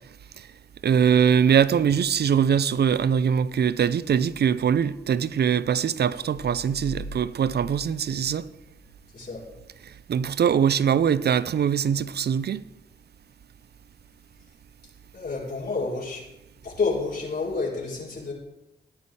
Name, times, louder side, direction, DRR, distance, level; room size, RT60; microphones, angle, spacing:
voice 1, 0.8-8.5 10.1-12.6, right 8 dB, 60° right, 0.6 m, -22 dB
sound 1, 6.6-9.1, equal, 75° left, 2.1 m, -41 dB
voice 2, 9.1-9.4 15.1-16.2 16.6-18.3, left 4 dB, 55° left, 4.4 m, -29 dB
18.0 x 9.6 x 3.3 m
supercardioid pair, 45°, 19 cm